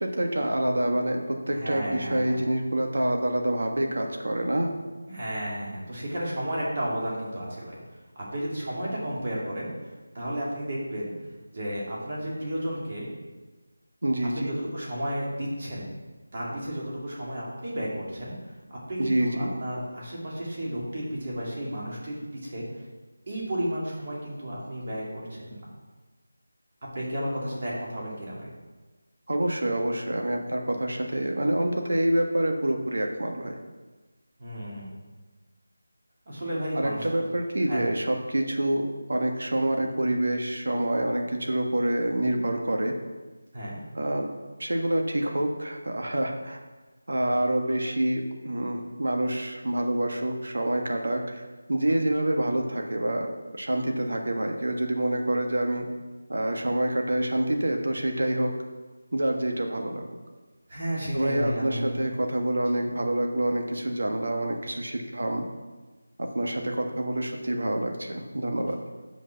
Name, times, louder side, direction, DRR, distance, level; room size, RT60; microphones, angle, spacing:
voice 1, 0.0-4.7 14.0-14.5 19.0-19.5 29.3-33.6 36.7-42.9 43.9-44.3 44.6-46.6 47.1-51.4 51.7-55.9 56.3-58.5 59.1-60.0 61.1-65.4 66.2-68.8, right 1 dB, 70° right, 3 dB, 1.5 m, -27 dB
voice 2, 1.5-2.4 5.1-7.8 8.2-11.1 11.5-13.2 14.3-15.9 16.3-18.3 18.7-22.8 23.3-25.7 26.9-28.5 34.4-35.0 36.3-37.2 37.7-38.0 43.5-43.8 60.7-62.1, equal, 30° right, -5 dB, 2.3 m, -32 dB
7.9 x 6.1 x 5.9 m, 1.3 s
figure-of-eight pair, 175°, 0 cm